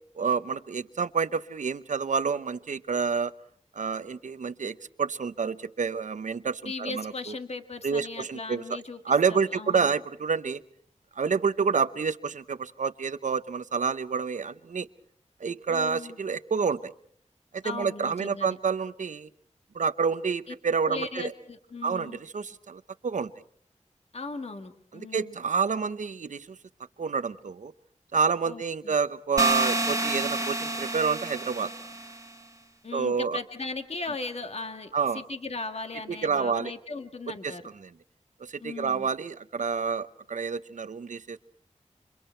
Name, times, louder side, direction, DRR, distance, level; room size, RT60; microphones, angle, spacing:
voice 1, 0.2-3.3 3.7-7.3 7.8-8.6 9.1-10.6 11.2-14.9 15.4-16.9 17.5-19.3 19.7-21.3 21.8-23.3 24.9-26.6 27.0-27.7 28.1-31.7 32.9-33.4 34.9-35.2 36.2-36.7 37.4-37.5 37.8-37.9 38.4-41.4, right 5 dB, 80° right, 13 dB, 0.9 m, -28 dB
voice 2, 6.6-9.0 9.3-9.9 15.7-16.2 17.6-18.6 20.5-20.6 20.9-22.2 24.1-25.4 28.5-28.9 32.8-37.6 38.6-39.1, left 3 dB, 55° left, 6 dB, 1.7 m, -38 dB
sound 1, 29.4-32.3, right 2 dB, 25° right, 1.4 m, -29 dB
29.0 x 26.0 x 4.5 m, 0.62 s
cardioid pair, 55°, 13 cm